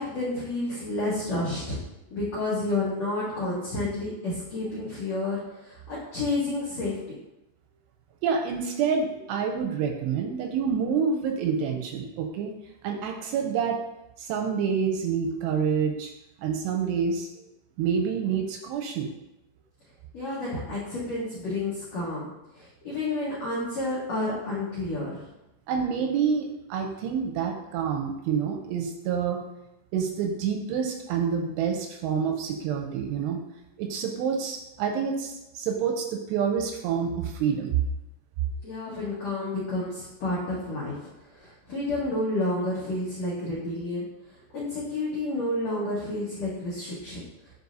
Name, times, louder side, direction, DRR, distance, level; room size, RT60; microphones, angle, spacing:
voice 1, 0.0-1.8 2.1-7.1 20.1-25.2 38.6-47.2, left 2 dB, 75° left, -8 dB, 1.5 m, -30 dB
voice 2, 8.2-12.5 12.8-13.8 14.2-16.1 16.4-17.3 17.8-19.1 25.7-29.4 29.9-33.4 33.8-37.7, right 6 dB, 85° right, 3 dB, 2.5 m, -27 dB
9.4 x 4.7 x 2.6 m, 0.92 s
omnidirectional pair, 5.1 m